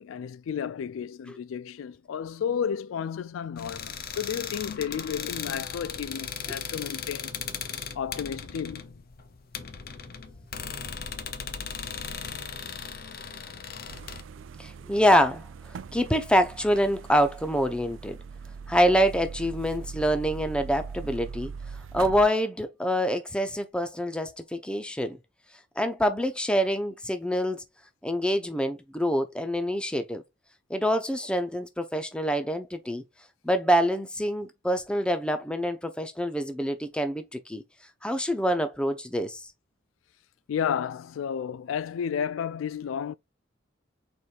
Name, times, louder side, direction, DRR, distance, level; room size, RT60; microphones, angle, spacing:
voice 1, 0.0-7.3 8.0-9.0 40.5-43.1, left 7 dB, 90° left, 0.3 m, -32 dB
sound 1, 3.6-14.2, left 7 dB, 50° left, 0.6 m, -37 dB
sound 2, 13.9-22.3, right 5 dB, 80° right, 0.4 m, -41 dB
voice 2, 14.6-18.2 18.7-21.5 21.9-25.2 25.8-27.6 28.0-30.2 30.7-33.0 33.4-37.6 38.0-39.4, equal, 5° left, 0.5 m, -26 dB
4.9 x 4.3 x 2.4 m
head